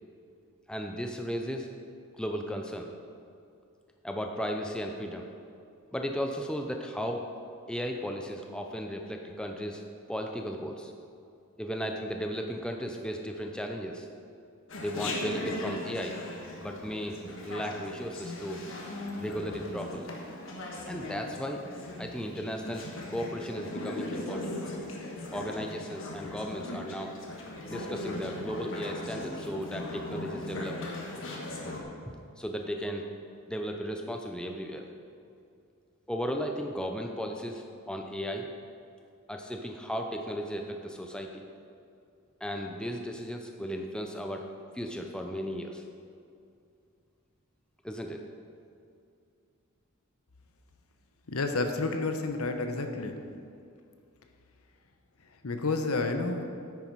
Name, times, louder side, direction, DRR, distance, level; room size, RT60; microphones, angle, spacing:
voice 1, 0.7-1.7 2.1-2.9 4.0-5.3 5.9-7.3 7.7-9.8 10.1-10.9 11.6-14.1 14.8-16.2 16.6-17.2 17.4-18.6 19.1-20.1 20.8-21.6 22.0-24.6 25.3-27.1 27.7-30.8 32.4-33.1 33.5-34.9 36.1-38.5 39.3-41.4 42.4-44.5 44.7-45.8 47.8-48.2, equal, 5° left, 3 dB, 0.5 m, -35 dB
Chatter, 14.7-31.8, left 1 dB, 60° left, 1.4 m, -38 dB
voice 2, 51.3-53.2 55.4-56.4, left 3 dB, 75° left, 6 dB, 0.9 m, -30 dB
9.6 x 9.3 x 4.7 m, 2.4 s
head